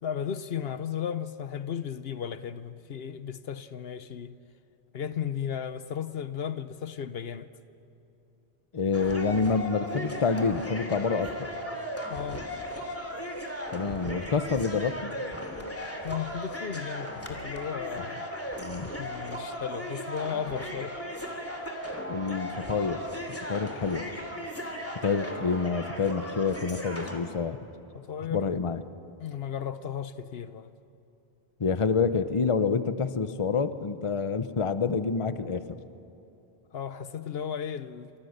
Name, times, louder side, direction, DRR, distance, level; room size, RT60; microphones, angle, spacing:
voice 1, 0.0-4.3 4.9-7.5 12.1-12.5 16.0-18.3 19.0-21.0 27.9-28.5 29.2-30.7 36.7-38.3, left 8 dB, 70° left, 1.0 m, -35 dB
voice 2, 8.7-11.5 13.7-15.1 18.6-18.9 22.1-23.0 23.5-24.1 25.0-27.6 28.3-28.8 31.6-35.8, left 5 dB, 30° left, 0.8 m, -27 dB
sound 1, 8.9-27.2, equal, 15° left, 2.7 m, -37 dB
29.5 x 26.5 x 6.6 m
omnidirectional pair, 1.1 m